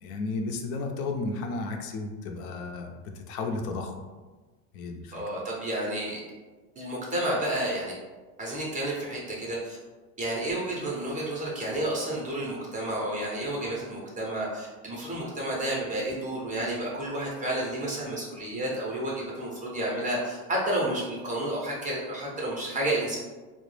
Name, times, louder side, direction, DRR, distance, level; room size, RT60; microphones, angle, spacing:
voice 1, 0.0-3.0 3.3-4.0 4.7-5.2, left 3 dB, 70° left, 4 dB, 0.5 m, -33 dB
voice 2, 5.1-6.2 6.8-7.9 8.4-9.8 10.2-23.2, right 1 dB, 20° right, -4 dB, 0.4 m, -31 dB
2.2 x 2.0 x 3.1 m, 1.3 s
supercardioid pair, 110°, 45 cm